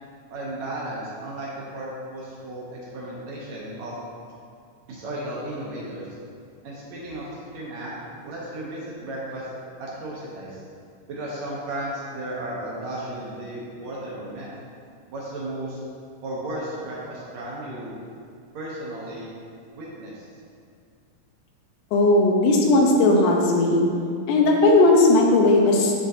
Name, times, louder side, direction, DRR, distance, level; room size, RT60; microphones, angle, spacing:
voice 1, 0.3-3.9 4.9-6.1 6.6-7.9 8.2-9.5 9.8-10.6 11.1-14.5 15.1-15.8 16.2-18.0 18.5-19.3 19.7-20.3, right 1 dB, 70° right, -6 dB, 1.9 m, -34 dB
voice 2, 21.9-23.8 24.3-25.9, left 2 dB, 80° left, 0 dB, 2.2 m, -17 dB
10.0 x 3.7 x 2.7 m, 2.3 s
omnidirectional pair, 3.7 m